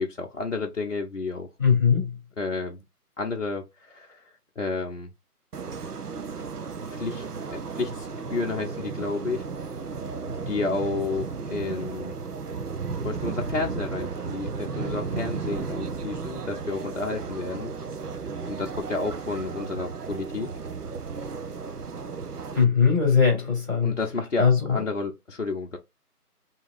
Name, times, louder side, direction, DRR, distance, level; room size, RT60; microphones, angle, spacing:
voice 1, 0.0-1.5 2.4-2.8 3.2-5.1 6.8-7.2 7.5-9.5 10.2-12.2 13.0-17.7 18.5-20.5 21.2-21.3 23.8-25.8, left 3 dB, 55° left, 0.6 m, -31 dB
voice 2, 1.6-2.1 22.5-23.9 24.4-24.8, left 6 dB, 10° right, 1.7 m, -20 dB
sound 1, 5.5-22.6, right 5 dB, 75° right, 0.8 m, -34 dB
4.7 x 2.9 x 2.4 m
figure-of-eight pair, 165°, 46 cm